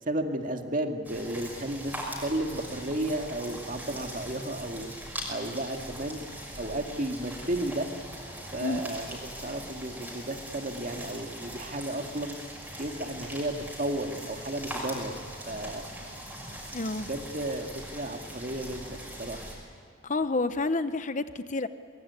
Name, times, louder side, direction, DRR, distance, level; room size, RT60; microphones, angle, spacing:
voice 1, 0.1-1.9 2.2-4.9 5.3-6.2 6.6-7.9 8.5-12.4 12.8-15.1 15.4-15.8 16.9-19.4, right 1 dB, 40° right, 4 dB, 2.1 m, -33 dB
sound 1, 1.0-19.6, right 1 dB, 10° right, 6.1 m, -41 dB
voice 2, 16.7-17.1 20.0-21.7, left 3 dB, 40° left, 12 dB, 0.7 m, -29 dB
24.0 x 22.5 x 9.6 m, 2.6 s
head